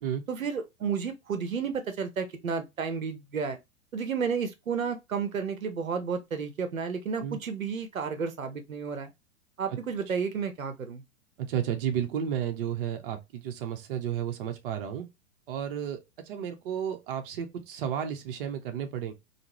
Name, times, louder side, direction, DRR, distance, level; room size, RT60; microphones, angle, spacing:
voice 1, 0.3-3.6 3.9-9.1 9.6-11.0, right 6 dB, 75° right, 0.7 m, -32 dB
voice 2, 11.4-15.1 15.5-16.0 16.3-19.1, right 9 dB, 40° right, 0.7 m, -32 dB
3.6 x 2.0 x 3.0 m
figure-of-eight pair, 100°, 41 cm